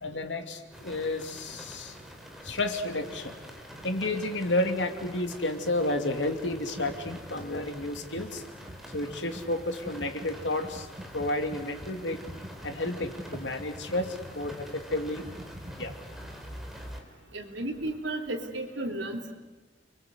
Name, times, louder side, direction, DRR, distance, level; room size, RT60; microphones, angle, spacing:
voice 1, 0.0-2.0 2.4-3.3 3.8-8.4 8.9-10.9 11.1-12.2 12.6-15.3 15.8-15.9, left 2 dB, 80° left, 6 dB, 2.7 m, -31 dB
sound 1, 0.7-17.0, equal, ahead, 3.6 m, -46 dB
Computer keyboard, 6.5-16.0, right 1 dB, 30° right, 1.2 m, -45 dB
voice 2, 17.3-19.3, right 1 dB, 85° right, 3 dB, 3.6 m, -34 dB
29.5 x 23.5 x 8.1 m, 1.2 s
head